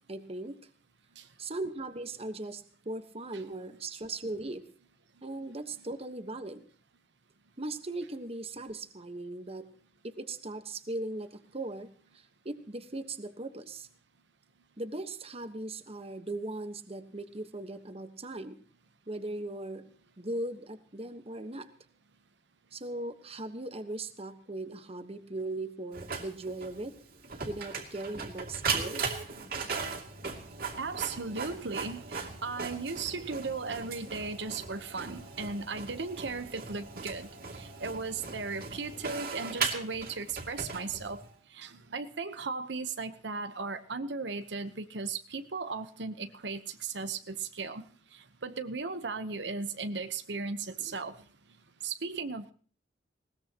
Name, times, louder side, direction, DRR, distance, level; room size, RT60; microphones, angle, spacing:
voice 1, 0.1-0.6 1.4-4.6 5.2-6.6 7.6-9.7 10.0-11.9 12.4-13.9 14.8-18.6 19.1-19.8 20.2-21.7 22.7-27.0 27.5-29.0, right 2 dB, 35° right, 9 dB, 1.3 m, -38 dB
voice 2, 5.4-5.8 30.8-41.2 41.5-51.2 51.8-52.5, right 4 dB, 80° right, 9 dB, 1.0 m, -37 dB
Printer, 25.9-41.3, right 5 dB, 55° right, 2.7 m, -38 dB
20.0 x 18.5 x 3.0 m, 0.44 s
head